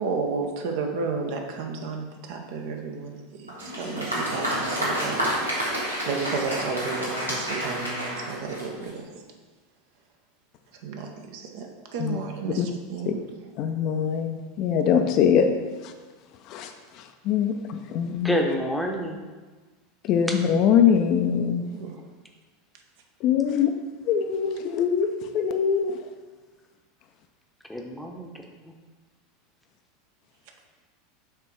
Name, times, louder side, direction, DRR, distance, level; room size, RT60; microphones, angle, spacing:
voice 1, 0.0-3.5 3.8-5.2 6.1-9.0 10.8-13.2 21.7-22.0, right 4 dB, 55° right, 3 dB, 0.8 m, -32 dB
Applause, 3.5-9.0, equal, 90° right, 1.4 m, -29 dB
voice 2, 13.6-15.5 15.8-15.9 16.5-16.7 17.2-18.4 20.0-21.6 23.2-23.7 24.1-25.1 25.3-26.0, left 8 dB, 45° left, 6 dB, 0.5 m, -22 dB
voice 3, 18.2-19.3 20.3-20.4 27.7-28.3 28.6-28.7, equal, ahead, 0 dB, 0.9 m, -28 dB
6.6 x 3.5 x 4.6 m, 1.3 s
figure-of-eight pair, 80°, 0 cm